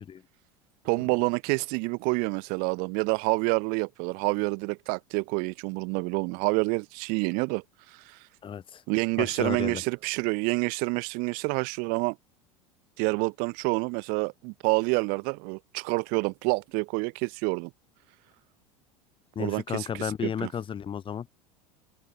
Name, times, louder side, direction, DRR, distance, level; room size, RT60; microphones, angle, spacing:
voice 1, 0.8-8.3 8.9-12.2 13.0-17.7 19.4-20.5, right 32 dB, 50° right, 1.4 m, -28 dB
voice 2, 8.4-8.8 9.2-9.8 19.3-21.3, left 8 dB, 25° left, 3.1 m, -33 dB
open air
figure-of-eight pair, 75°, 19 cm